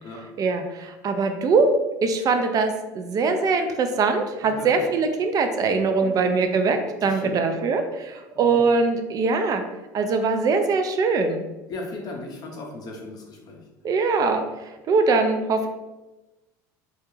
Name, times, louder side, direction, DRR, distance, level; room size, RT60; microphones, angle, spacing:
voice 1, 0.4-1.7 2.0-9.6 9.9-11.4 13.8-15.7, right 4 dB, 40° right, 6 dB, 0.3 m, -22 dB
voice 2, 4.4-4.9 6.0-6.1 7.0-7.3 8.3-8.6 11.7-13.6, left 2 dB, 45° left, 0 dB, 0.5 m, -37 dB
2.2 x 2.1 x 3.0 m, 1.1 s
supercardioid pair, 85°, 10 cm